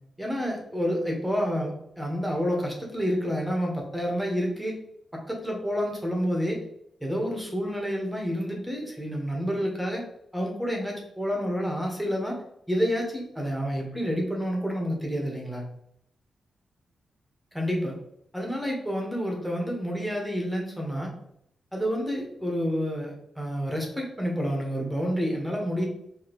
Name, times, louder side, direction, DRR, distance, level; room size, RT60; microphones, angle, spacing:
voice 1, 0.2-4.8 5.1-6.6 7.0-10.0 10.3-12.4 12.7-15.6 17.5-17.9 18.3-21.1 21.7-25.9, equal, 5° right, 0 dB, 1.2 m, -29 dB
4.7 x 2.9 x 3.0 m, 0.74 s
wide cardioid pair, 110°, 0 cm